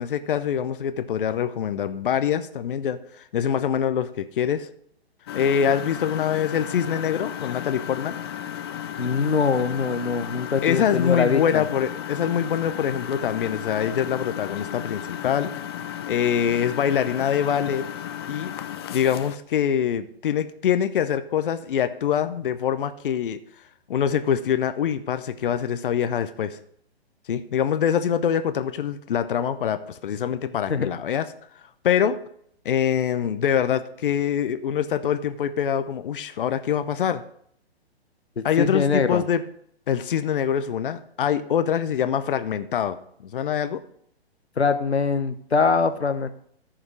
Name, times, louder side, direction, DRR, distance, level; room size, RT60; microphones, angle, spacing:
voice 1, 0.0-3.0 3.3-4.7 5.3-8.2 10.6-15.5 16.1-17.9 18.3-18.5 18.9-23.4 23.9-26.6 27.3-31.2 31.8-32.2 32.6-37.2 38.4-39.4 39.9-43.0 43.2-43.8, left 8 dB, 55° left, 11 dB, 0.9 m, -24 dB
Engine, 5.3-19.4, left 10 dB, 25° left, 0.4 m, -34 dB
voice 2, 9.0-11.6 30.7-30.9 38.4-39.2 44.6-46.3, left 5 dB, 85° left, 10 dB, 1.1 m, -23 dB
14.0 x 5.1 x 4.7 m, 0.67 s
figure-of-eight pair, 125°, 32 cm